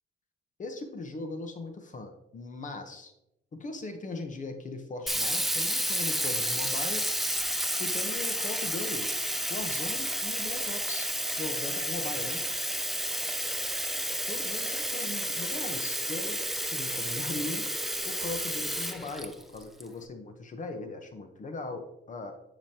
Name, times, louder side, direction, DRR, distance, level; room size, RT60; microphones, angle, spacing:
voice 1, 0.6-3.1 3.5-7.0 7.8-9.1 9.5-11.1 11.4-12.4 14.3-17.6 18.0-22.3, left 3 dB, 40° left, 6 dB, 1.0 m, -39 dB
Sink (filling or washing), 5.1-19.8, equal, ahead, 0.6 m, -31 dB
10.5 x 5.1 x 2.9 m, 0.85 s
cardioid pair, 90°, 20 cm